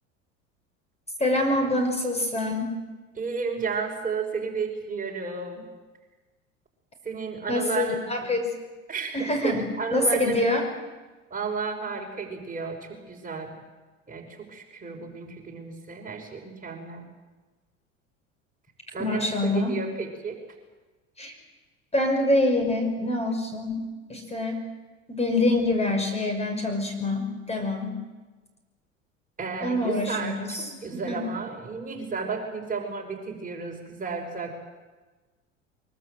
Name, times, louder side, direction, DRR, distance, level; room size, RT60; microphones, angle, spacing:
voice 1, 1.2-2.8 7.5-8.5 9.1-10.7 19.0-19.8 21.2-21.3 21.9-23.8 24.1-24.6 25.1-27.9 29.6-31.3, left 2 dB, 15° left, 5 dB, 5.7 m, -26 dB
voice 2, 3.1-5.7 7.0-8.0 8.9-10.4 11.3-13.5 14.1-17.0 18.9-20.4 29.4-34.5, right 5 dB, 20° right, 1 dB, 5.9 m, -32 dB
24.0 x 23.5 x 7.8 m, 1.2 s
figure-of-eight pair, 75°, 38 cm